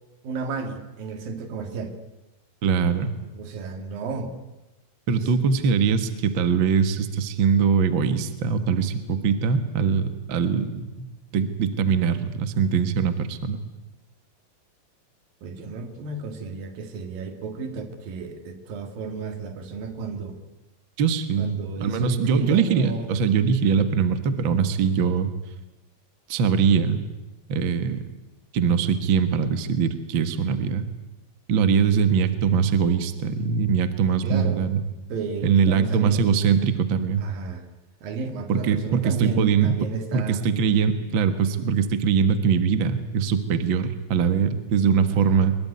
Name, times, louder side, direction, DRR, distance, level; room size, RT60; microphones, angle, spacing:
voice 1, 0.2-2.0 3.2-4.3 5.1-5.3 15.4-20.4 21.4-23.1 34.2-34.7 35.1-36.2 37.2-37.6 38.0-40.4 45.1-45.5, right 4 dB, 70° right, 7 dB, 3.7 m, -32 dB
voice 2, 2.6-3.1 5.1-13.6 21.0-21.5 21.8-25.3 26.3-27.0 27.5-28.0 28.5-30.9 31.5-34.8 35.4-37.2 38.5-39.7 40.1-45.6, right 6 dB, 50° right, 10 dB, 1.5 m, -22 dB
24.0 x 22.0 x 9.7 m, 1.0 s
omnidirectional pair, 4.3 m